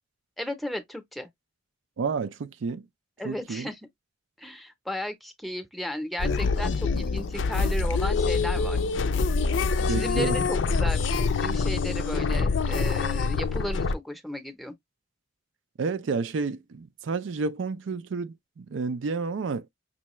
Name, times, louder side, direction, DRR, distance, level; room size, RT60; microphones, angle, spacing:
voice 1, 0.4-1.3 3.2-3.8 4.4-8.8 9.9-14.7, left 1 dB, ahead, 0.7 m, -35 dB
voice 2, 2.0-2.9 3.2-3.7 9.9-10.4 15.8-19.7, right 4 dB, 80° right, 0.4 m, -30 dB
sound 1, 6.2-14.0, left 4 dB, 75° left, 0.4 m, -25 dB
5.6 x 2.2 x 3.0 m
head